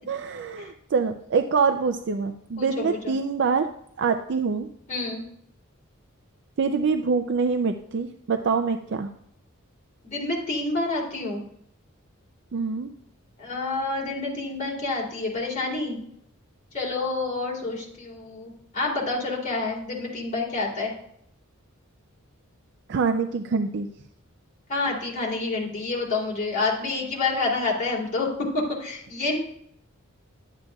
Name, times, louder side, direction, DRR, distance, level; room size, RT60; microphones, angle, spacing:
voice 1, 0.1-3.7 4.0-4.7 6.6-9.1 12.5-12.9 22.9-23.9, right 5 dB, 60° right, 6 dB, 0.4 m, -25 dB
voice 2, 2.6-3.1 4.9-5.2 10.0-11.4 13.4-16.0 16.7-20.9 24.7-29.4, left 3 dB, 40° left, -3 dB, 2.9 m, -28 dB
11.5 x 7.9 x 2.3 m, 0.70 s
head